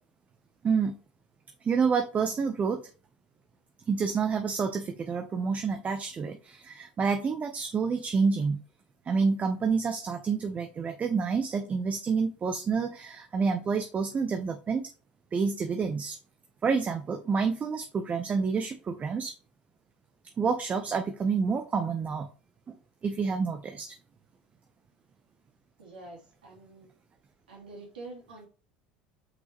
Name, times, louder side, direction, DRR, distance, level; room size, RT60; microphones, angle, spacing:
voice 1, 0.6-0.9 1.6-2.8 3.9-8.6 9.1-14.9 15.3-16.2 16.6-19.3 20.4-22.3 22.7-22.8 23.0-23.9, right 5 dB, 30° right, 6 dB, 0.8 m, -28 dB
voice 2, 25.8-26.9 27.5-28.5, right 2 dB, 90° right, -3 dB, 2.8 m, -46 dB
6.2 x 5.4 x 3.0 m, 0.36 s
hypercardioid pair, 80°, 5 cm